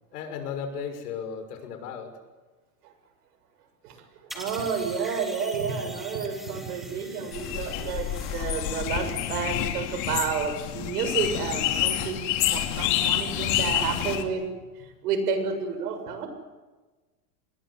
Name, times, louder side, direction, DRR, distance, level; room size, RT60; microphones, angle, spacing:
voice 1, 0.1-2.1, left 6 dB, 80° left, 7 dB, 6.4 m, -35 dB
sound 1, 4.3-9.4, equal, ahead, 3.2 m, -44 dB
voice 2, 4.3-12.2 12.5-14.4 15.0-16.3, right 6 dB, 80° right, 8 dB, 7.2 m, -30 dB
sound 2, 7.3-14.2, left 12 dB, 40° left, 2.7 m, -28 dB
28.0 x 21.5 x 8.2 m, 1.2 s
supercardioid pair, 170°, 46 cm